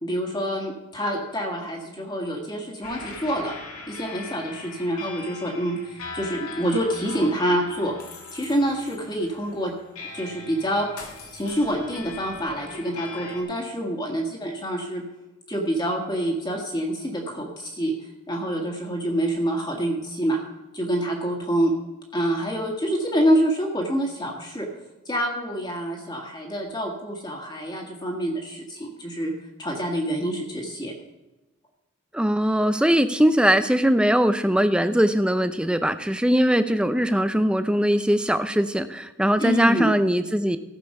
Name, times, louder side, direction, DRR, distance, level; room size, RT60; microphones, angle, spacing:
voice 1, 0.0-3.6 3.9-7.9 8.3-9.7 10.1-10.9 11.3-15.0 15.5-17.9 18.3-20.4 20.7-21.8 22.1-24.7 25.1-29.3 29.6-30.9 39.4-39.9, equal, 20° left, 0 dB, 1.6 m, -26 dB
sound 1, 2.8-13.4, left 4 dB, 85° left, 2.3 m, -40 dB
voice 2, 32.1-40.6, equal, 5° right, 10 dB, 0.4 m, -21 dB
15.0 x 6.7 x 5.4 m, 1.0 s
head